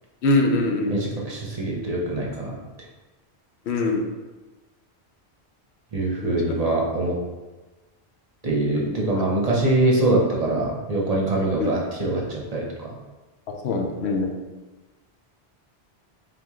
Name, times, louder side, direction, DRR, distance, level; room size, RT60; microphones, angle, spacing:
voice 1, 0.2-0.9 3.7-4.0 6.2-6.3 8.7-9.0 11.6-11.7 13.6-14.3, left 2 dB, 90° left, 2 dB, 0.9 m, -23 dB
voice 2, 0.9-2.6 5.9-7.2 8.4-13.0, right 2 dB, 40° right, -2 dB, 0.7 m, -23 dB
3.7 x 3.0 x 3.5 m, 1.2 s
omnidirectional pair, 1.1 m